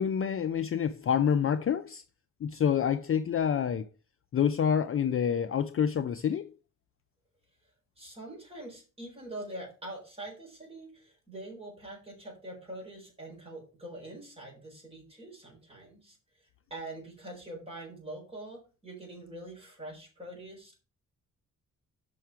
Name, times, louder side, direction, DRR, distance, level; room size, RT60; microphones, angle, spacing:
voice 1, 0.0-2.0 2.4-3.9 4.3-6.5, left 8 dB, 40° left, 0.4 m, -27 dB
voice 2, 8.0-20.8, right 1 dB, 15° right, 4.0 m, -44 dB
6.2 x 5.7 x 5.6 m
wide cardioid pair, 165°, 33 cm